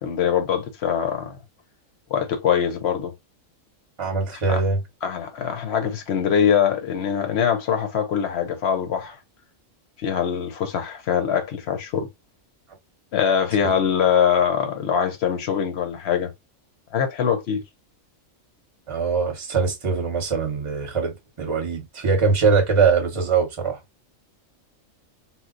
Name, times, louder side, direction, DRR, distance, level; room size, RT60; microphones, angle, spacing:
voice 1, 0.0-1.4 2.1-3.1 4.3-4.6 5.0-9.2 10.0-12.1 13.1-16.3 16.9-17.6, left 8 dB, 60° left, 0.9 m, -23 dB
voice 2, 4.0-4.8 13.6-13.8 18.9-23.8, right 5 dB, 25° right, 0.8 m, -22 dB
3.0 x 2.0 x 3.7 m
omnidirectional pair, 1.4 m